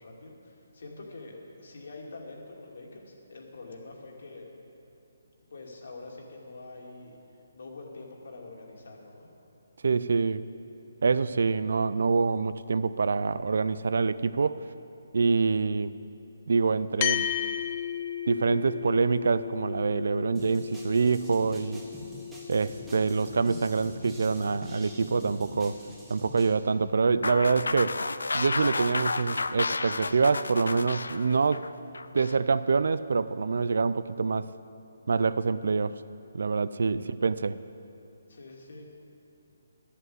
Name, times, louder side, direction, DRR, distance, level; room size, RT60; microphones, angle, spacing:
voice 1, 0.0-4.5 5.5-7.2 7.5-9.3 36.9-37.1 38.3-38.8, left 2 dB, 65° left, -1 dB, 2.5 m, -45 dB
voice 2, 9.8-10.4 11.0-14.6 15.1-15.9 16.5-17.3 18.3-21.8 22.5-25.8 26.1-28.0 28.3-31.7 32.1-34.5 35.1-36.0 36.3-37.6, right 4 dB, 70° right, 15 dB, 0.4 m, -26 dB
sound 1, 17.0-25.7, left 10 dB, 30° left, 0.5 m, -36 dB
sound 2, 20.3-26.5, equal, 5° right, 1.5 m, -45 dB
sound 3, 27.2-32.4, left 3 dB, 90° left, 0.5 m, -31 dB
11.5 x 7.9 x 7.9 m, 2.8 s
hypercardioid pair, 160°, 0 cm